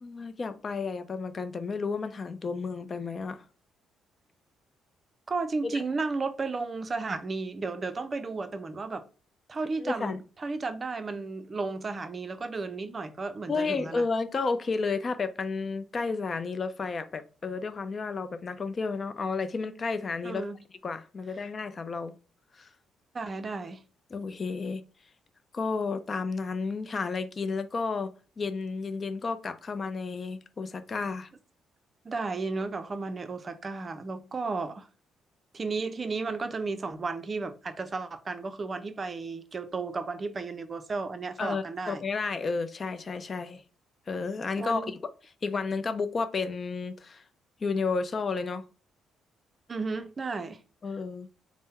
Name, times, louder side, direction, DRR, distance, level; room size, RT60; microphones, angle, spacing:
voice 1, 0.0-3.4 5.6-5.8 9.8-10.2 13.5-20.4 20.8-22.1 22.5-22.7 24.1-24.8 25.5-28.1 28.4-31.3 41.4-43.6 44.1-45.0 45.4-47.2 47.6-48.6 50.8-51.3, left 4 dB, 40° left, 0.4 m, -32 dB
voice 2, 5.3-9.0 9.5-14.0 20.2-20.6 23.1-23.8 32.0-34.9 35.5-42.0 44.6-44.9 49.7-50.6, right 3 dB, 35° right, 0.5 m, -33 dB
3.6 x 2.1 x 4.2 m
cardioid pair, 90°, 0 cm